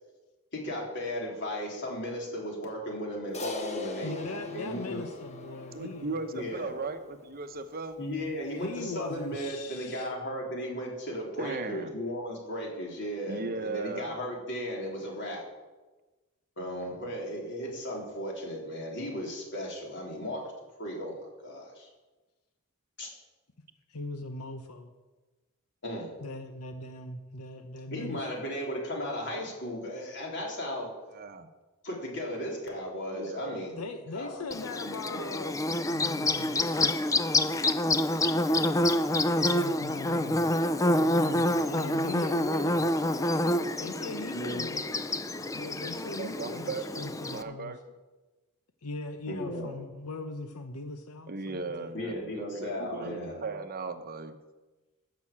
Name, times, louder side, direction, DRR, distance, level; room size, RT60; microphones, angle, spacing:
voice 1, 0.5-4.2 4.5-5.0 6.3-6.7 8.0-15.4 16.6-20.5 20.8-21.9 23.0-23.1 25.8-26.1 27.9-30.9 31.8-33.8 34.1-34.4 44.3-44.7 49.3-49.7 51.9-53.4, equal, 55° left, -1 dB, 3.6 m, -35 dB
Crash cymbal, 3.3-7.9, left 3 dB, 30° left, 1.1 m, -41 dB
voice 2, 4.0-6.1 8.6-10.1 23.9-24.9 26.2-28.2 33.8-37.2 39.5-40.5 40.8-43.0 43.8-44.8 45.5-47.7 48.8-51.9, left 2 dB, 85° left, 7 dB, 0.9 m, -40 dB
voice 3, 5.7-8.0 11.4-11.9 13.3-14.1 31.1-31.5 33.1-33.6 46.2-47.8 51.3-54.4, right 3 dB, 45° right, 8 dB, 0.9 m, -37 dB
Bird / Buzz, 34.5-47.4, left 1 dB, 15° left, 0.5 m, -27 dB
13.0 x 6.1 x 8.6 m, 1.2 s
head